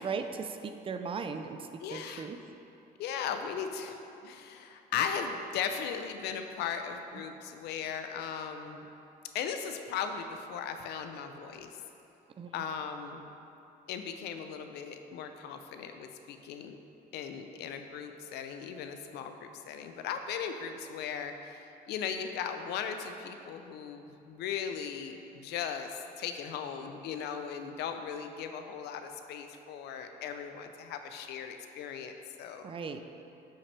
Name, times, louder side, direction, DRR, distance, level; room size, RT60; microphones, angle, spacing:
voice 1, 0.0-2.4 12.4-12.6 32.6-33.0, right 5 dB, 30° right, 7 dB, 0.4 m, -37 dB
voice 2, 1.8-2.3 3.0-8.9 9.3-11.8 12.5-13.3 13.9-16.8 17.1-32.1 32.4-32.7, left 7 dB, 80° left, 7 dB, 0.5 m, -37 dB
8.2 x 5.6 x 3.3 m, 2.8 s
cardioid pair, 110°, 17 cm